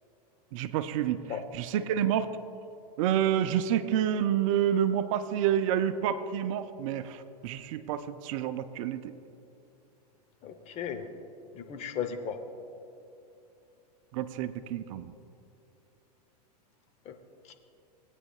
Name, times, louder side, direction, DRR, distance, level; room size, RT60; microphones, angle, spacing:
voice 1, 0.5-2.3 3.0-9.1 14.1-15.1, right 10 dB, 50° right, 11 dB, 0.6 m, -29 dB
voice 2, 10.4-11.1 11.5-12.4 17.1-17.2 17.5-17.6, left 8 dB, 30° left, 6 dB, 0.9 m, -35 dB
19.0 x 8.9 x 2.4 m, 2.7 s
hypercardioid pair, 105°, 21 cm